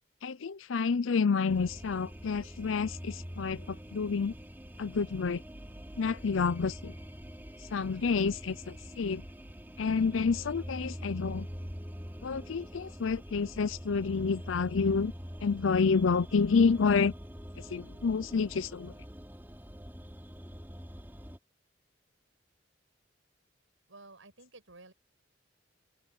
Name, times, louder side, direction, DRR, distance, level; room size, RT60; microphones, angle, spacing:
voice 1, 0.2-4.3 4.8-5.4 6.0-6.9 7.7-9.2 9.8-11.5 12.2-15.1 15.4-17.1 17.6-18.9, left 5 dB, 85° left, 0.5 m, -29 dB
sound 1, 1.5-21.4, equal, 10° right, 2.9 m, -45 dB
voice 2, 23.9-24.9, right 2 dB, 90° right, 6.1 m, -53 dB
open air
head